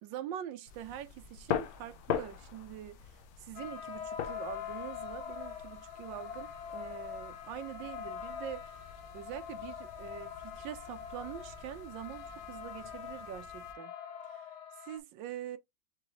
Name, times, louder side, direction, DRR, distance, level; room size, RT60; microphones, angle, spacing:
voice 1, 0.0-8.8 9.1-13.9 14.2-14.5 14.8-15.6, right 11 dB, 85° right, 1.3 m, -44 dB
sound 1, 0.7-13.7, left 9 dB, 90° left, 1.4 m, -43 dB
sound 2, 3.5-15.0, left 8 dB, 55° left, 0.8 m, -44 dB
5.0 x 3.0 x 3.0 m
omnidirectional pair, 1.9 m